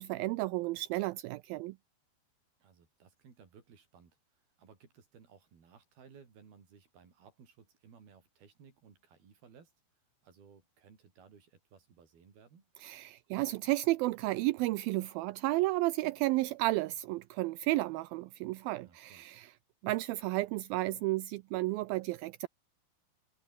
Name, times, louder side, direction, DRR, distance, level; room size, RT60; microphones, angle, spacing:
voice 1, 0.0-1.8 12.8-19.5 19.8-22.5, right 19 dB, 85° right, 2.1 m, -32 dB
voice 2, 2.6-9.7 10.2-12.7 18.8-19.2, right 6 dB, 60° right, 6.3 m, -59 dB
omnidirectional pair, 4.9 m